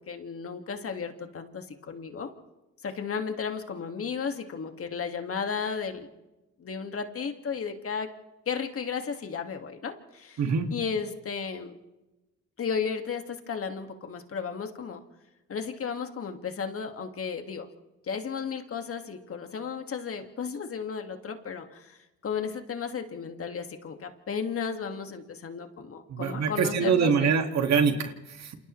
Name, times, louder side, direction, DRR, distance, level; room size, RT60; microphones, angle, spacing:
voice 1, 0.0-2.3 2.8-6.1 6.6-8.1 8.5-10.4 10.7-11.8 12.6-15.0 15.5-17.7 18.1-22.0 22.2-27.3, left 6 dB, 50° left, 5 dB, 2.1 m, -34 dB
voice 2, 10.4-10.7 26.1-28.5, right 6 dB, 60° right, 5 dB, 2.2 m, -24 dB
28.0 x 28.0 x 3.3 m, 1.0 s
cardioid pair, 90°, 30 cm